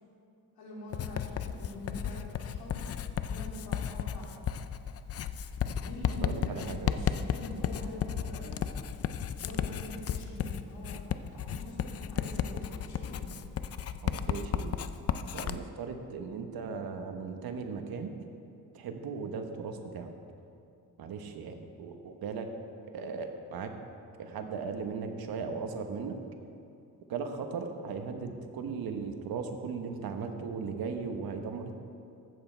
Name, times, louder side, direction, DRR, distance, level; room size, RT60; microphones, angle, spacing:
voice 1, 0.6-2.8 3.3-4.2 5.8-8.6 9.4-13.3, left 1 dB, 80° left, -3 dB, 2.8 m, -44 dB
Writing, 0.9-15.6, left 9 dB, 45° left, 0.4 m, -34 dB
voice 2, 6.2-7.0 14.0-14.8 15.3-18.1 18.7-20.1 21.0-22.5 22.9-23.7 24.2-26.2 27.1-31.7, right 5 dB, 75° right, 5 dB, 1.1 m, -37 dB
14.5 x 8.1 x 4.4 m, 2.7 s
cardioid pair, 145°, 36 cm